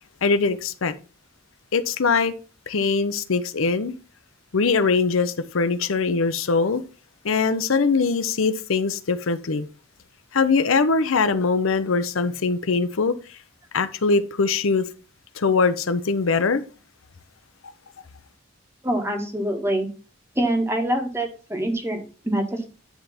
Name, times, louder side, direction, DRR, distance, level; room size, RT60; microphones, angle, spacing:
voice 1, 0.2-0.9 1.7-2.3 2.7-3.9 4.5-6.8 7.2-9.7 10.3-13.1 13.7-14.9 15.4-16.6, left 4 dB, 85° left, 0.7 m, -22 dB
voice 2, 18.8-19.9 20.3-22.7, right 1 dB, 15° right, 1.5 m, -25 dB
10.5 x 3.5 x 5.7 m
head